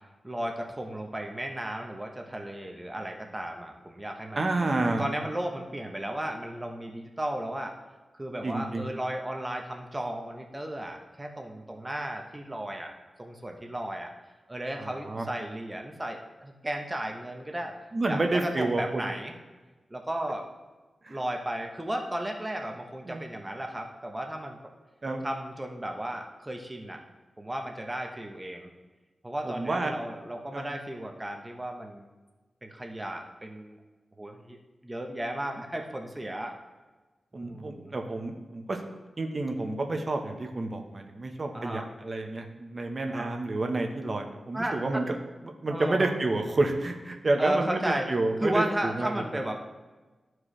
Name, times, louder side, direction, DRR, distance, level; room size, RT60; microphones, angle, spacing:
voice 1, 0.2-4.5 5.0-7.7 8.1-12.9 13.2-14.1 14.5-17.7 18.1-19.3 19.9-20.5 21.1-24.6 25.2-27.0 27.4-28.7 29.2-32.1 32.6-33.8 34.2-34.6 34.8-36.5 37.4-37.9 41.5-41.9 43.1-43.3 44.5-45.0 45.7-46.2 47.4-48.1 48.4-49.6, right 1 dB, 20° right, 2 dB, 1.1 m, -34 dB
voice 2, 4.3-5.0 8.4-8.8 14.8-15.3 17.9-19.0 21.0-21.2 23.1-23.2 25.0-25.2 29.4-29.9 30.5-30.6 37.3-38.8 39.2-45.0 45.6-49.2, right 2 dB, 40° right, 3 dB, 1.2 m, -29 dB
13.5 x 4.7 x 3.3 m, 1.2 s
wide cardioid pair, 80°, 0 cm